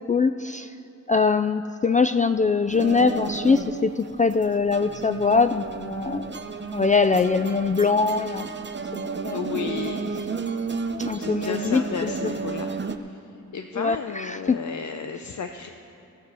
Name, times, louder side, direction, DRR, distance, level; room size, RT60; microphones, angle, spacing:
voice 1, 0.1-0.7 1.1-6.4 6.7-8.5 8.9-9.4 11.0-12.1 13.8-14.6, left 4 dB, 25° left, 10 dB, 0.4 m, -22 dB
sound 1, 2.7-13.0, right 4 dB, 35° right, 0.8 m, -32 dB
voice 2, 9.3-10.2 11.1-15.7, left 6 dB, 60° left, 5 dB, 0.7 m, -34 dB
15.0 x 6.9 x 6.9 m, 2.9 s
cardioid pair, 50°, 33 cm